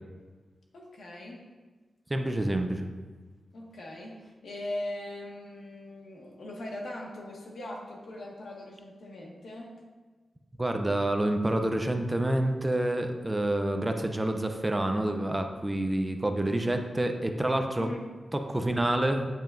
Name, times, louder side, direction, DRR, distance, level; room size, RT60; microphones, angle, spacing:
voice 1, 0.7-1.5 3.5-9.8 17.8-18.1, left 1 dB, 80° left, -2 dB, 1.5 m, -40 dB
voice 2, 2.1-2.9 10.6-17.9 18.3-19.3, right 1 dB, 15° right, 5 dB, 0.5 m, -28 dB
9.0 x 7.9 x 2.5 m, 1.4 s
wide cardioid pair, 175°, 0 cm